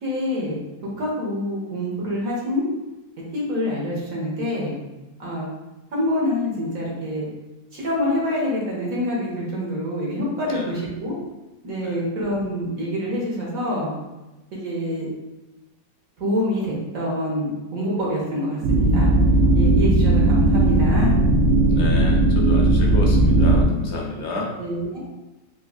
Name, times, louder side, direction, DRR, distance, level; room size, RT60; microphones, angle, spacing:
voice 1, 0.0-0.6 1.0-2.7 3.3-4.8 5.2-5.5 5.9-7.3 7.7-11.2 11.6-13.9 14.5-15.1 16.2-19.1 19.5-21.1 24.6-25.0, left 1 dB, 55° right, -4 dB, 1.2 m, -26 dB
voice 2, 10.4-10.8 11.8-12.0 21.7-24.5, left 2 dB, 70° left, -1 dB, 1.0 m, -31 dB
sound 1, 18.6-23.6, right 2 dB, 80° right, 0.6 m, -17 dB
4.3 x 2.7 x 2.3 m, 1.1 s
omnidirectional pair, 1.9 m